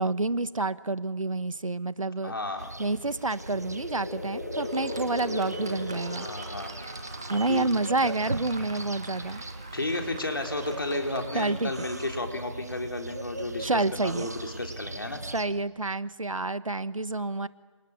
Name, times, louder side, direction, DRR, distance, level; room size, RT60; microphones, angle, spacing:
voice 1, 0.0-2.3 2.8-6.3 7.3-9.4 11.3-11.7 13.6-14.3 15.3-17.5, right 2 dB, 75° right, 15 dB, 1.3 m, -28 dB
voice 2, 2.2-2.7 6.2-6.7 7.5-7.7 8.0-8.1 9.7-13.7 13.9-15.2, left 2 dB, 40° left, 3 dB, 4.0 m, -32 dB
sound 1, 2.6-15.5, right 2 dB, 30° right, 1.1 m, -40 dB
sound 2, 3.0-7.1, left 2 dB, 10° left, 1.7 m, -38 dB
Fireworks, 4.6-11.5, right 2 dB, 10° right, 1.2 m, -44 dB
28.0 x 27.5 x 7.4 m, 1.4 s
figure-of-eight pair, 180°, 17 cm